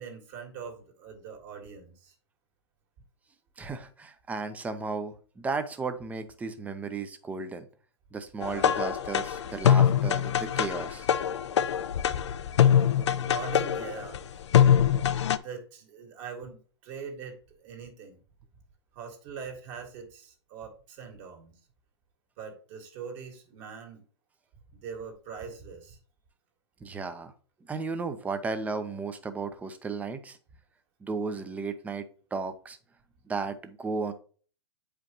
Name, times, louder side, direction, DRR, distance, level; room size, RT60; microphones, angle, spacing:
voice 1, 0.0-2.1 8.4-8.8 12.8-14.3 15.4-16.6 16.8-18.2 18.9-21.6 22.4-24.0 24.7-26.0, right 6 dB, 40° right, 2 dB, 2.1 m, -42 dB
voice 2, 3.6-7.7 8.1-11.1 26.8-27.3 27.7-30.4 31.0-32.8 33.3-34.1, right 4 dB, 10° right, 9 dB, 0.7 m, -34 dB
sound 1, 8.4-15.4, left 9 dB, 75° left, 0.5 m, -24 dB
8.3 x 5.1 x 3.0 m, 0.41 s
hypercardioid pair, 130°, 15 cm